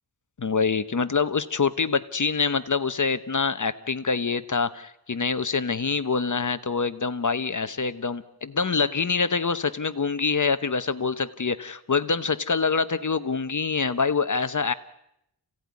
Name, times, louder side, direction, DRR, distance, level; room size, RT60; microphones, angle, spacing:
voice 1, 0.4-14.7, left 5 dB, 45° left, 13 dB, 0.9 m, -25 dB
28.0 x 16.5 x 9.5 m, 0.81 s
wide cardioid pair, 115°, 44 cm